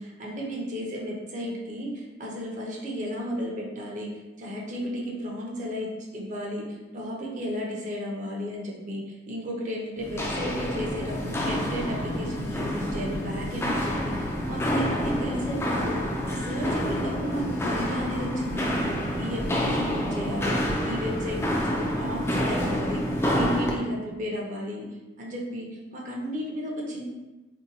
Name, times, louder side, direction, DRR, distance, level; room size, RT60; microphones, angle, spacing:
voice 1, 0.0-4.1 4.4-18.9 19.2-23.0 23.3-24.9 25.2-27.0, equal, 45° right, -3 dB, 0.6 m, -33 dB
Walk footsteps, 10.0-23.8, equal, 15° left, 0.3 m, -28 dB
2.7 x 2.2 x 3.9 m, 1.1 s
head